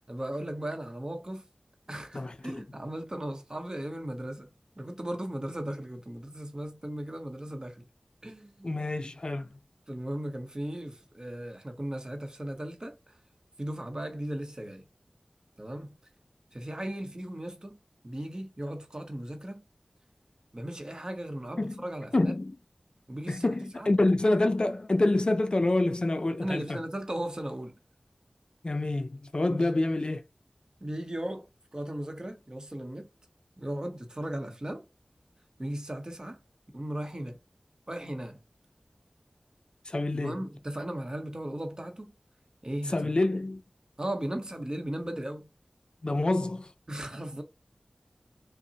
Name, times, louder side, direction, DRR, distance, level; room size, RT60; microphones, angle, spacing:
voice 1, 0.1-1.5 1.9-4.5 4.8-7.8 8.2-8.7 9.0-9.1 9.9-13.0 13.6-14.8 15.6-16.0 16.5-17.8 18.0-19.6 20.5-22.3 23.1-23.9 26.4-27.7 29.5-29.7 30.8-31.5 31.7-33.1 33.6-34.8 35.6-36.4 36.7-37.4 37.9-38.4 40.1-42.1 42.6-43.1 44.0-45.5 46.9-47.4, right 1 dB, 35° right, 0.8 m, -37 dB
voice 2, 2.1-2.6 8.6-9.5 21.6-21.7 22.1-22.6 23.3-26.8 28.6-30.2 39.9-40.4 42.9-43.6 46.0-46.7, left 2 dB, 45° left, 0.4 m, -27 dB
5.3 x 2.1 x 2.8 m
wide cardioid pair, 55°, 2 cm